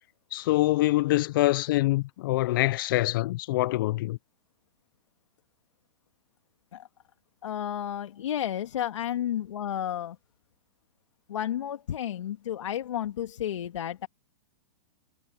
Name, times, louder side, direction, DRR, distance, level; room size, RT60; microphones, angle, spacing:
voice 1, 0.3-4.2, left 17 dB, 45° left, 0.4 m, -25 dB
voice 2, 7.4-10.2 11.3-14.1, left 10 dB, 75° left, 1.9 m, -32 dB
hypercardioid pair, 150°, 16 cm